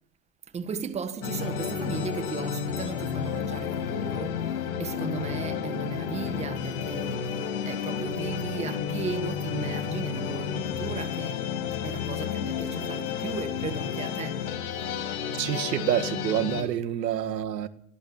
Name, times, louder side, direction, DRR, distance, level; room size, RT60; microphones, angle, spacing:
voice 1, 0.5-11.4 11.8-14.4, right 5 dB, 15° right, 1.7 m, -36 dB
sound 1, 1.2-16.6, left 8 dB, 65° left, 6.1 m, -31 dB
voice 2, 15.4-17.7, right 11 dB, 85° right, 2.1 m, -27 dB
23.5 x 15.5 x 7.3 m
supercardioid pair, 150°, 48 cm